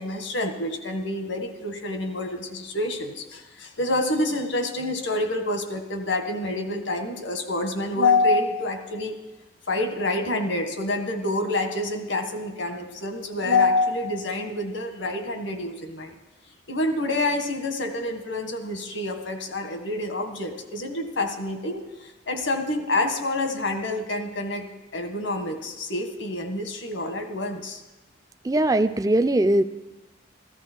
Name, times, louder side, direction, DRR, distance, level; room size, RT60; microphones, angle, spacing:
voice 1, 0.0-9.1 9.7-16.1 16.7-21.8 22.3-24.7 24.9-27.8, left 2 dB, 85° left, 5 dB, 1.7 m, -27 dB
voice 2, 28.4-29.6, right 1 dB, 20° right, 10 dB, 0.4 m, -20 dB
15.0 x 14.5 x 4.6 m, 1.1 s
head